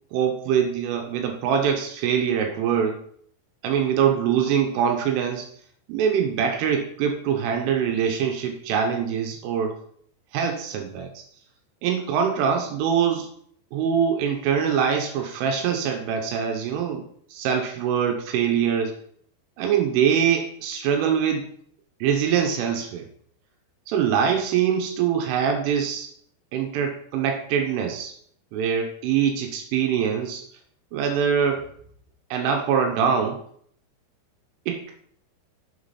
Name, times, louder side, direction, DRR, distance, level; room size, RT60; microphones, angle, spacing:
voice 1, 0.1-3.0 3.6-5.5 5.9-9.8 10.3-11.2 11.8-13.3 13.7-17.0 17.3-18.9 19.6-21.5 22.0-23.1 23.9-26.1 26.5-28.1 28.5-30.4 30.9-31.6 32.3-33.4 34.7-34.9, right 7 dB, 85° right, 3 dB, 3.4 m, -23 dB
6.9 x 6.4 x 4.2 m, 0.63 s
omnidirectional pair, 5.6 m